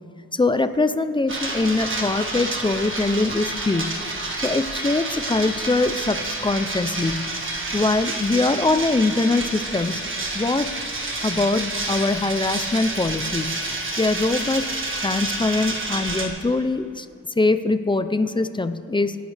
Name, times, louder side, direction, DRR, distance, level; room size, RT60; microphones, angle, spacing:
voice 1, 0.3-4.0 4.4-7.3 7.7-10.0 10.3-10.7 11.2-13.6 14.0-14.7 15.0-17.1 17.4-19.2, left 3 dB, 15° left, 11 dB, 0.4 m, -22 dB
sound 1, 1.3-16.3, right 2 dB, 35° right, 1.6 m, -29 dB
25.0 x 10.5 x 3.3 m, 2.4 s
wide cardioid pair, 140°, 33 cm